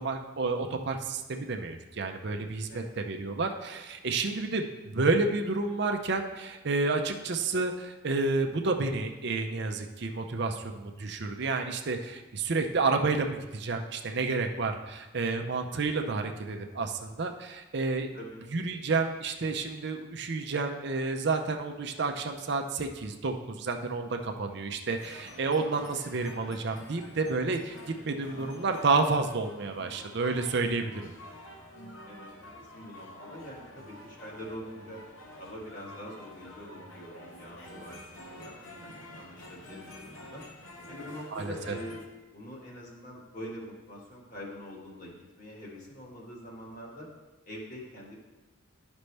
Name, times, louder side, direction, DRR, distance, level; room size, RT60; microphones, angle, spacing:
voice 1, 0.0-18.1 18.5-31.0 41.3-41.7, right 3 dB, 50° right, 4 dB, 0.5 m, -30 dB
voice 2, 2.7-3.0 18.1-18.4 30.9-31.2 32.0-35.0 35.4-40.4 40.9-42.0 42.3-47.1 47.4-48.2, equal, 40° left, -4 dB, 1.8 m, -44 dB
sound 1, 25.0-42.1, left 1 dB, 65° left, 1.0 m, -48 dB
11.5 x 5.2 x 3.3 m, 1.1 s
head